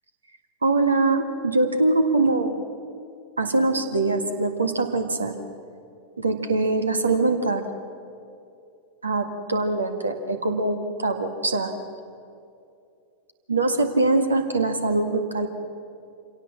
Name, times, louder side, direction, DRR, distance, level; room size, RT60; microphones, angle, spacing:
voice 1, 0.6-2.6 3.4-5.3 6.2-7.6 9.0-11.7 13.5-15.5, right 2 dB, 75° right, 7 dB, 1.8 m, -23 dB
26.5 x 17.5 x 7.3 m, 2.6 s
figure-of-eight pair, 90°, 0 cm